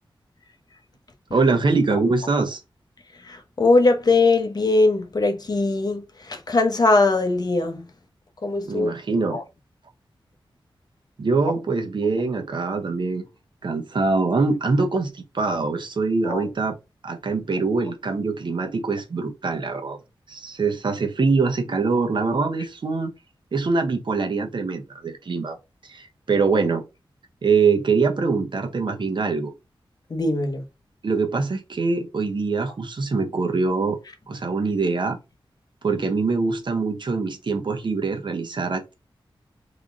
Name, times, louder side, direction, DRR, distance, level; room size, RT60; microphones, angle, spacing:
voice 1, 1.3-2.6 8.7-9.4 11.2-13.2 13.6-16.8 17.0-20.0 20.3-23.1 23.5-25.6 25.8-26.8 27.4-29.5 31.0-34.0 34.3-35.2 35.8-38.9, right 4 dB, 60° right, 1.0 m, -23 dB
voice 2, 3.2-7.8 8.4-8.9 9.3-9.4 16.2-16.4 30.1-30.6, left 3 dB, 45° left, 1.0 m, -21 dB
3.8 x 3.4 x 4.1 m
wide cardioid pair, 100°, 9 cm